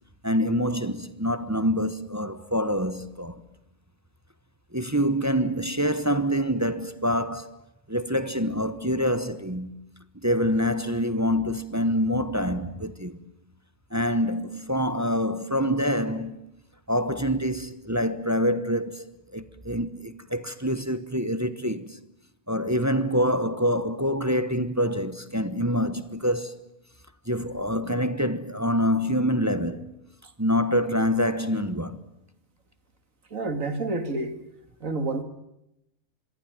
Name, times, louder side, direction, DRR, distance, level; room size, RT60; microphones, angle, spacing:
voice 1, 0.2-3.4 4.7-7.6 7.9-9.7 10.2-13.2 13.9-16.4 16.9-22.0 22.5-26.6 27.3-29.9 30.4-32.0, equal, 15° right, 0.9 m, -26 dB
voice 2, 33.3-34.3 34.8-35.2, right 2 dB, 60° right, 2.5 m, -28 dB
26.5 x 22.5 x 9.2 m
omnidirectional pair, 1.6 m